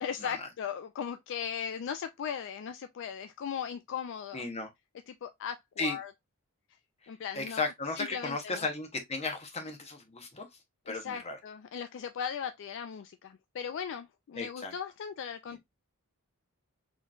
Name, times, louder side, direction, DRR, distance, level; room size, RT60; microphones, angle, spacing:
voice 1, 0.0-4.5 5.1-6.1 7.1-7.6 8.0-8.7 10.9-15.6, left 7 dB, 55° left, 0.3 m, -38 dB
voice 2, 4.3-4.7 5.8-6.0 7.4-10.5 10.9-11.4 14.4-14.7, left 3 dB, 30° left, 0.9 m, -35 dB
4.1 x 3.1 x 2.4 m
head